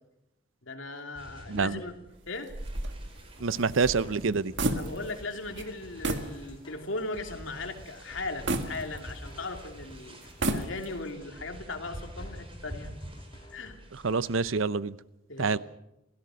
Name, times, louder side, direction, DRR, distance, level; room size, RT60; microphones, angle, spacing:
voice 1, 0.6-2.0 2.3-2.6 4.6-12.9 13.5-13.8 15.3-15.6, left 2 dB, 80° left, 4 dB, 2.9 m, -38 dB
sound 1, 1.1-14.5, equal, 30° right, 4.2 m, -48 dB
voice 2, 1.5-1.8 3.4-4.5 14.0-14.9 15.4-15.6, right 4 dB, 85° right, 17 dB, 0.7 m, -26 dB
sound 2, 2.5-5.3 5.6-5.7 6.0-6.4 6.8-6.9 8.5-9.5 10.2-11.1, right 2 dB, 65° right, 1.8 m, -32 dB
sound 3, 3.4-13.8, equal, 25° left, 3.2 m, -53 dB
28.5 x 16.5 x 6.4 m, 0.87 s
head